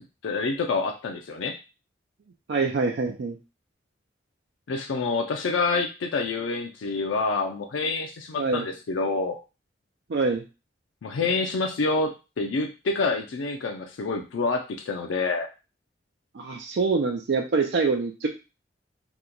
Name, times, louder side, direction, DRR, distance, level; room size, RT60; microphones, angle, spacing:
voice 1, 0.2-1.6 4.7-9.4 11.0-15.5, left 3 dB, 90° left, 3 dB, 0.4 m, -27 dB
voice 2, 2.5-3.4 8.4-8.7 10.1-10.4 16.3-18.3, right 4 dB, 65° right, 2 dB, 0.4 m, -25 dB
2.9 x 2.2 x 3.8 m, 0.30 s
head